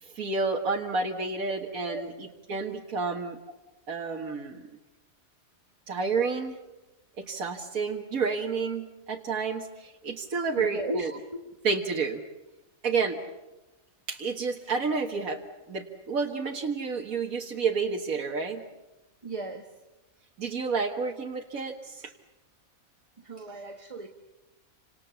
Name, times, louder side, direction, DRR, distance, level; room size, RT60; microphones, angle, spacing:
voice 1, 0.0-3.4 3.9-4.7 5.9-6.6 7.2-11.1 11.6-12.2 12.8-13.2 14.1-15.4 15.7-18.6 20.4-22.1, right 4 dB, 80° right, 0 dB, 2.1 m, -30 dB
voice 2, 1.7-2.0 3.0-3.1 10.6-11.5 19.2-19.7 23.2-24.1, right 2 dB, 25° right, 4 dB, 1.4 m, -36 dB
29.0 x 27.0 x 7.0 m, 1.0 s
omnidirectional pair, 1.5 m